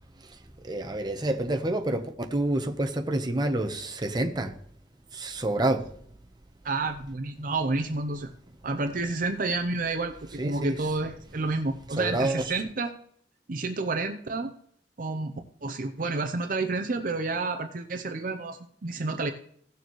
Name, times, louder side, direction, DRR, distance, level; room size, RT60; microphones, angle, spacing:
voice 1, 0.6-4.5 5.1-5.9 10.4-10.9 11.9-12.6, right 1 dB, 25° right, 1.0 m, -28 dB
voice 2, 6.6-8.3 8.6-12.9 13.5-14.5 15.0-15.3 15.6-19.3, right 3 dB, 50° right, 0.7 m, -30 dB
17.0 x 6.7 x 3.1 m
head